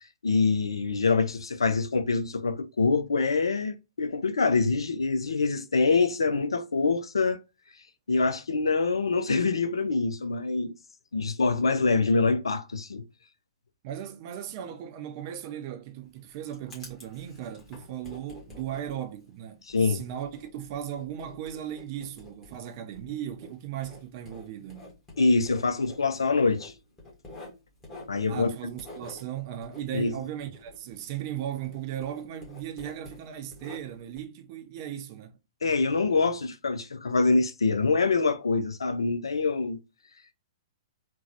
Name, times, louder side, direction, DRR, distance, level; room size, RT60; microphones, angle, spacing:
voice 1, 0.2-7.4 8.1-10.7 11.1-13.0 19.7-20.0 25.2-26.7 28.1-28.5 29.9-30.1 35.6-39.8, left 4 dB, 70° left, 0.5 m, -25 dB
voice 2, 13.8-24.9 28.3-35.3, right 10 dB, 40° right, 0.5 m, -37 dB
Writing, 16.0-31.4 31.6-34.2, left 2 dB, 15° left, 1.5 m, -49 dB
3.8 x 2.2 x 2.8 m
figure-of-eight pair, 110°, 3 cm